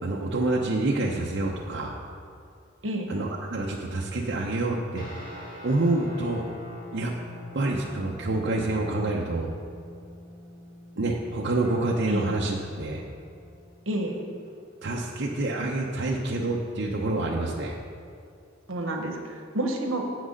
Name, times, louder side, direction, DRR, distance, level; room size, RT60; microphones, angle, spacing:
voice 1, 0.0-2.0 3.1-5.0 5.6-6.4 6.9-7.1 7.5-9.5 11.0-13.0 14.8-17.8, right 2 dB, 60° right, -2 dB, 0.7 m, -27 dB
sound 1, 5.0-14.7, left 1 dB, 45° left, 1.9 m, -46 dB
voice 2, 18.7-20.0, right 1 dB, 80° right, 3 dB, 1.1 m, -29 dB
8.2 x 6.1 x 6.4 m, 2.3 s
head